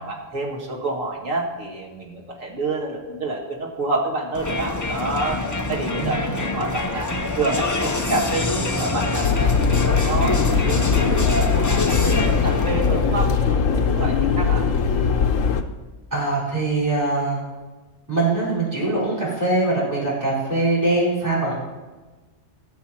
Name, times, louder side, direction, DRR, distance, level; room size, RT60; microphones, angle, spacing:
voice 1, 0.0-7.1 7.4-12.0 12.3-14.6, right 2 dB, 80° right, -1 dB, 2.4 m, -28 dB
Crowd, 4.3-13.2, left 2 dB, 20° left, 0.6 m, -25 dB
voice 2, 6.0-6.3 16.1-17.4 18.1-21.5, right 2 dB, 15° right, -7 dB, 4.6 m, -22 dB
sound 1, 9.2-15.6, left 6 dB, 85° left, 1.2 m, -20 dB
18.5 x 7.0 x 4.5 m, 1.3 s
omnidirectional pair, 1.3 m